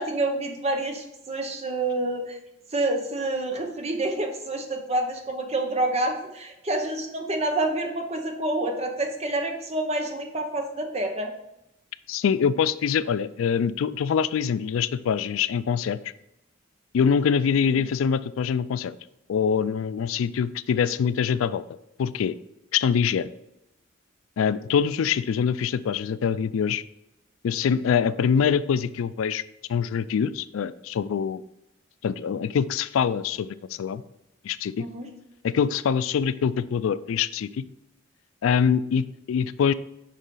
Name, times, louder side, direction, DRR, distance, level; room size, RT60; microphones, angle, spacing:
voice 1, 0.0-2.4 2.7-11.3 34.8-35.1, right 2 dB, 30° right, 3 dB, 0.9 m, -28 dB
voice 2, 12.1-16.0 16.9-19.0 19.3-21.6 22.0-22.4 22.7-23.3 24.4-26.8 27.4-29.4 29.7-31.4 32.0-33.5 33.8-34.0 34.4-34.8 35.4-37.6 38.4-39.7, left 7 dB, 90° left, 16 dB, 0.3 m, -24 dB
6.5 x 5.0 x 3.8 m, 0.87 s
head